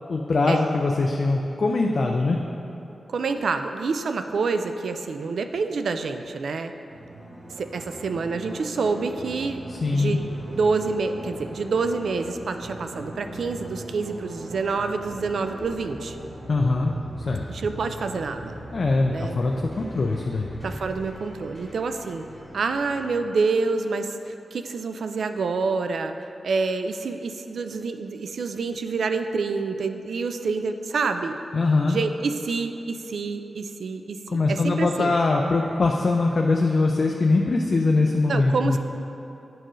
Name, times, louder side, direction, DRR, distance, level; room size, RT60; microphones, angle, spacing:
voice 1, 0.1-2.4 9.7-10.2 16.5-16.9 17.3-17.4 18.7-20.6 31.5-32.0 34.3-38.8, left 3 dB, 45° left, 1 dB, 0.3 m, -22 dB
voice 2, 3.1-6.7 7.5-9.6 9.9-16.2 17.5-18.6 19.1-19.4 20.6-22.3 22.5-31.4 31.9-35.2 38.3-38.8, right 4 dB, 75° right, 7 dB, 0.3 m, -27 dB
sound 1, 6.9-23.3, right 1 dB, 20° right, 1.3 m, -40 dB
9.9 x 4.4 x 3.1 m, 3.0 s
wide cardioid pair, 175°, 0 cm